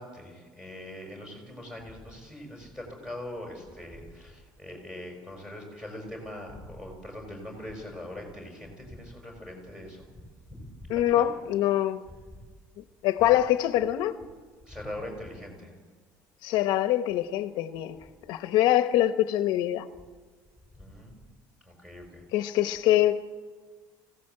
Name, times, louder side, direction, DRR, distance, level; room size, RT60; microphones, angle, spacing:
voice 1, 0.0-10.1 10.5-11.3 14.6-15.7 20.8-21.2 21.6-22.2, left 1 dB, 10° right, 2 dB, 6.0 m, -42 dB
voice 2, 10.9-12.0 13.0-14.1 16.4-18.0 18.3-19.9 22.3-23.2, left 13 dB, 65° left, 9 dB, 1.0 m, -24 dB
24.5 x 17.0 x 7.7 m, 1.5 s
cardioid pair, 165°, 8 cm